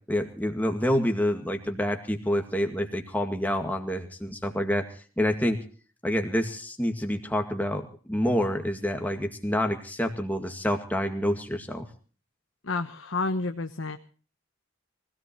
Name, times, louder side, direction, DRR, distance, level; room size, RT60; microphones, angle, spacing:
voice 1, 0.1-5.6 6.0-11.9, equal, 10° left, 4 dB, 2.0 m, -27 dB
voice 2, 12.6-14.0, left 3 dB, 65° left, 6 dB, 1.1 m, -30 dB
24.0 x 17.0 x 3.0 m, 0.40 s
head